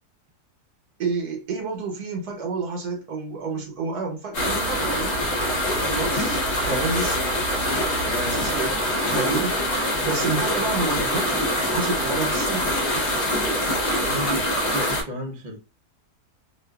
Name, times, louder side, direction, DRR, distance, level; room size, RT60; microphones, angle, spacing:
voice 1, 1.0-5.2 5.8-7.2 8.3-13.0, right 3 dB, 70° right, 1.4 m, -30 dB
sound 1, 4.3-15.0, equal, 50° left, 1.0 m, -24 dB
voice 2, 8.1-8.5 14.0-15.6, equal, 40° right, 0.6 m, -33 dB
2.8 x 2.4 x 2.3 m
omnidirectional pair, 1.7 m